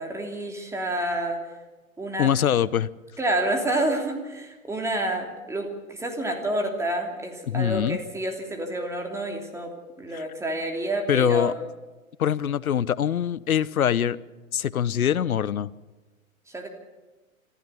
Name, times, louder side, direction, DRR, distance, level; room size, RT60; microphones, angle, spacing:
voice 1, 0.0-1.4 2.0-2.3 3.2-11.6 16.5-16.7, right 1 dB, 5° right, 2.9 m, -29 dB
voice 2, 2.2-2.9 7.5-8.0 10.1-10.3 11.1-11.5 12.2-14.2 14.5-15.7, left 9 dB, 80° left, 0.9 m, -23 dB
25.5 x 15.5 x 7.0 m
hypercardioid pair, 125°, 42 cm